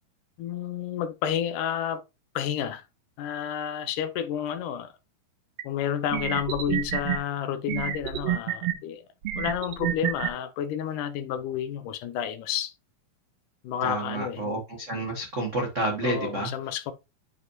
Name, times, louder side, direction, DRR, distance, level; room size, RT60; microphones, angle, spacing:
voice 1, 0.4-2.0 2.4-2.8 3.2-4.9 5.6-9.0 9.4-12.7 13.6-14.4 16.0-16.9, left 9 dB, 75° left, 2.1 m, -30 dB
sound 1, 5.6-5.7 6.1-7.2 7.7-8.7 9.2-10.3, right 11 dB, 65° right, 1.7 m, -28 dB
voice 2, 13.8-16.5, right 1 dB, 85° right, 0.6 m, -29 dB
9.5 x 5.4 x 3.0 m
omnidirectional pair, 4.0 m